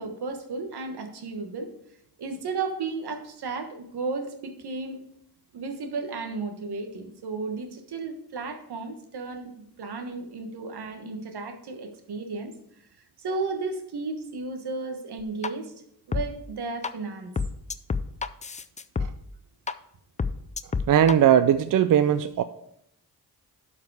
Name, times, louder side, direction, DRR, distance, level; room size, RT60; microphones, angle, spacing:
voice 1, 0.0-1.7 2.2-5.0 5.5-12.5 13.2-15.7 16.1-17.3, right 4 dB, 85° right, 6 dB, 1.3 m, -34 dB
sound 1, 15.2-15.5 16.1-16.2 16.8-16.9 17.4-19.1 19.7-19.8 20.2-21.1, left 5 dB, 20° left, 0.3 m, -27 dB
voice 2, 20.9-22.4, right 10 dB, 55° right, 11 dB, 0.4 m, -19 dB
11.5 x 4.9 x 4.8 m, 0.74 s
wide cardioid pair, 110°, 38 cm